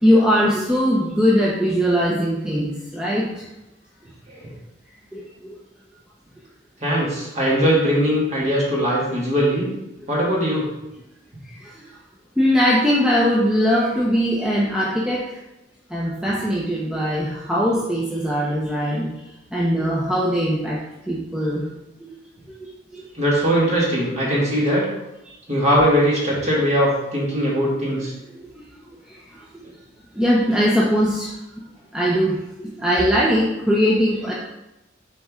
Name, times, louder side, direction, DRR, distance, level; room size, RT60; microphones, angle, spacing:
voice 1, 0.0-3.3 5.1-5.2 12.4-15.2 15.9-19.1 19.5-20.8 21.1-21.7 22.0-22.1 22.9-23.0 30.2-31.3 31.9-34.3, equal, 5° right, -5 dB, 0.7 m, -20 dB
voice 2, 6.8-9.7 10.1-10.7 23.1-24.9 25.5-28.1, equal, 35° right, -5 dB, 2.1 m, -20 dB
7.4 x 4.2 x 3.6 m, 0.93 s
head